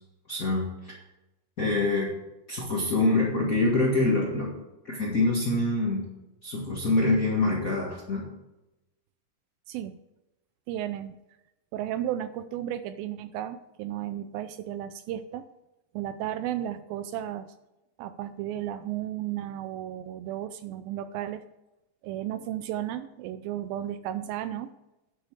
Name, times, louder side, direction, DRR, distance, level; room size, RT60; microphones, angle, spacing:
voice 1, 0.3-0.9 1.6-2.1 2.5-4.5 4.8-6.1 6.4-8.3, left 2 dB, 35° left, -3 dB, 1.4 m, -25 dB
voice 2, 10.7-11.2 11.7-15.5 15.9-17.5 18.0-21.4 22.0-24.7, right 11 dB, 80° right, 11 dB, 2.2 m, -34 dB
9.8 x 7.8 x 6.4 m, 0.96 s
omnidirectional pair, 4.4 m